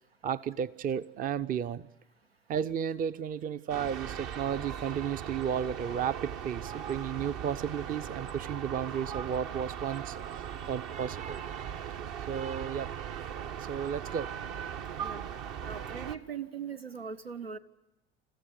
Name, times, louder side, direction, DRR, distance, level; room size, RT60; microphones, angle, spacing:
voice 1, 0.2-1.9 2.5-10.2 10.7-11.4 12.3-12.9 13.6-14.3, right 8 dB, 30° right, 0.7 m, -33 dB
sound 1, 3.7-16.2, right 8 dB, 50° right, 1.3 m, -39 dB
voice 2, 15.7-17.6, right 7 dB, 85° right, 1.0 m, -40 dB
29.5 x 15.0 x 8.2 m
figure-of-eight pair, 70°, 29 cm